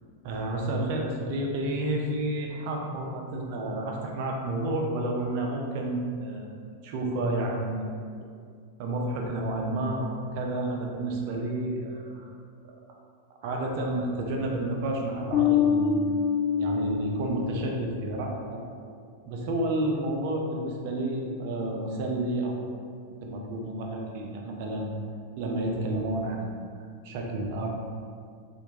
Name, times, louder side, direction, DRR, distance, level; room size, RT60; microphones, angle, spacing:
voice 1, 0.2-6.5 6.8-7.9 8.8-12.3 13.4-16.1 16.6-18.6 19.3-22.6 23.2-24.9 25.4-26.6 27.0-27.7, right 1 dB, 45° right, 0 dB, 0.6 m, -30 dB
Bass guitar, 15.3-18.0, left 7 dB, 25° left, 0.3 m, -25 dB
4.4 x 2.5 x 2.8 m, 2.2 s
figure-of-eight pair, 90°, 0 cm